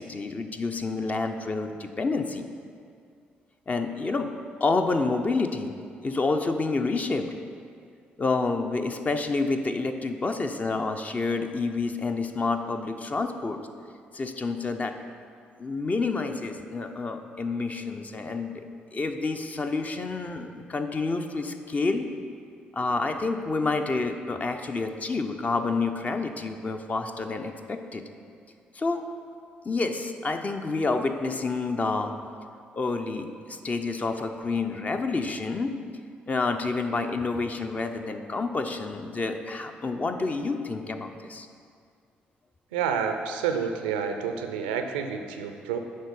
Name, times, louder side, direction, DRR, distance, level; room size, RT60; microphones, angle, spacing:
voice 1, 0.0-2.4 3.7-4.3 4.6-5.7 6.0-7.4 8.2-13.6 14.1-14.9 15.6-18.7 18.9-22.1 22.7-28.0 28.7-29.0 29.6-32.1 32.7-33.3 33.6-35.7 36.3-41.5, left 3 dB, 30° left, 6 dB, 0.6 m, -28 dB
voice 2, 42.7-45.8, right 7 dB, 70° right, 6 dB, 0.5 m, -29 dB
10.5 x 3.8 x 5.3 m, 2.3 s
figure-of-eight pair, 40°, 5 cm